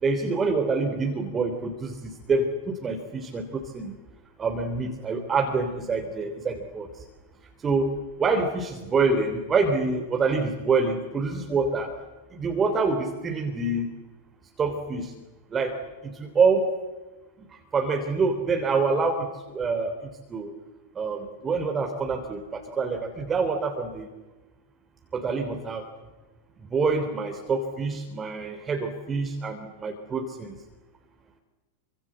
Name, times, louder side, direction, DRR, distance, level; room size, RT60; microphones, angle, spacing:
voice 1, 0.0-3.9 4.4-6.9 7.6-7.9 8.2-11.9 12.3-13.9 14.6-15.1 15.5-15.8 16.0-16.6 17.7-19.3 19.5-19.9 20.3-20.5 20.9-24.1 25.1-25.8 26.7-30.5, right 4 dB, 20° right, 5 dB, 3.4 m, -26 dB
29.0 x 25.0 x 7.8 m, 1.2 s
figure-of-eight pair, 90°, 0 cm